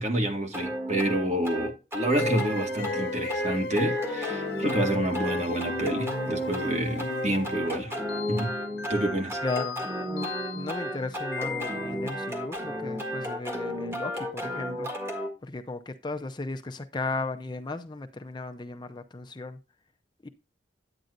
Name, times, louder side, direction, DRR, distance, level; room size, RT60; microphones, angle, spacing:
voice 1, 0.0-8.0 8.3-8.5 8.9-9.4, right 1 dB, 40° right, 1.8 m, -28 dB
sound 1, 0.5-15.3, equal, 15° right, 1.5 m, -33 dB
sound 2, 2.1-12.3, left 3 dB, 70° left, 0.6 m, -36 dB
voice 2, 9.4-19.6 20.2-20.3, left 3 dB, 25° left, 0.6 m, -36 dB
9.7 x 9.2 x 2.6 m
head